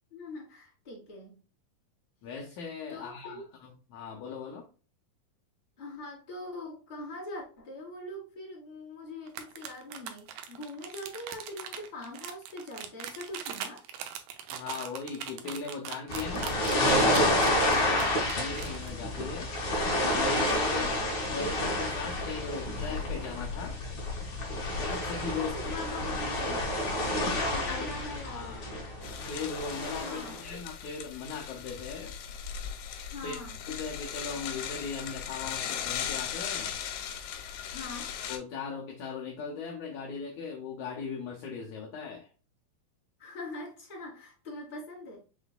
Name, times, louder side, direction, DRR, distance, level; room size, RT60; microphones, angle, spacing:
voice 1, 0.1-1.4 2.9-3.4 5.8-13.8 20.7-21.1 25.3-26.6 27.2-28.7 30.0-30.6 33.1-33.6 37.7-38.2 43.2-45.2, left 2 dB, 15° left, 1.8 m, -42 dB
voice 2, 2.2-4.7 14.5-19.5 20.1-20.9 21.2-23.8 24.8-25.8 27.5-27.9 28.2-28.7 29.3-32.1 33.2-33.4 33.6-36.7 38.3-42.3, left 5 dB, 70° left, 1.9 m, -39 dB
sound 1, 9.3-18.9, right 9 dB, 80° right, 2.3 m, -40 dB
sound 2, 16.1-30.4, left 1 dB, 40° left, 2.0 m, -29 dB
sound 3, 29.0-38.4, left 8 dB, 90° left, 2.6 m, -38 dB
6.0 x 3.8 x 2.2 m
omnidirectional pair, 4.1 m